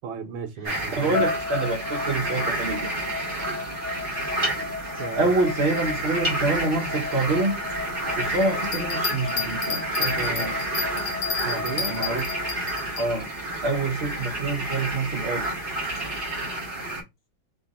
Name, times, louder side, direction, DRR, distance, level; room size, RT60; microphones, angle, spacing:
voice 1, 0.0-1.2 5.0-5.3 11.4-11.9 16.9-17.0, right 6 dB, 75° right, 1.6 m, -34 dB
sound 1, 0.6-17.0, right 1 dB, 30° right, 1.5 m, -30 dB
voice 2, 0.9-2.9 5.1-7.6 8.2-10.6 11.7-12.2 13.0-13.3 13.6-15.5, right 2 dB, 50° right, 0.7 m, -26 dB
sound 2, 1.1-13.3, left 4 dB, 75° left, 0.7 m, -35 dB
sound 3, 8.6-13.1, left 5 dB, 50° left, 2.1 m, -31 dB
3.8 x 2.9 x 4.0 m
omnidirectional pair, 2.3 m